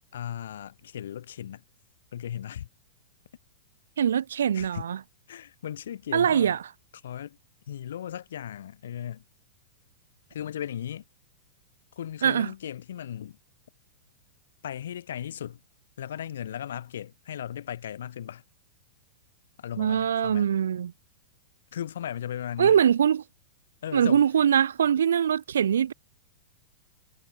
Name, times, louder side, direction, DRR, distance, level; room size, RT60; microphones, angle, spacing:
voice 1, 0.1-1.6 2.1-2.7 4.5-4.8 5.3-6.6 7.0-7.4 7.7-9.2 10.3-11.0 12.0-13.4 14.6-15.6 16.0-18.4 19.6-20.5 21.7-22.8 23.8-24.2, left 10 dB, 80° left, 6.0 m, -36 dB
voice 2, 4.0-5.0 6.1-6.6 12.2-12.5 19.8-20.9 22.6-23.2 23.9-25.9, right 8 dB, 90° right, 0.6 m, -22 dB
hypercardioid pair, 135°, 0 cm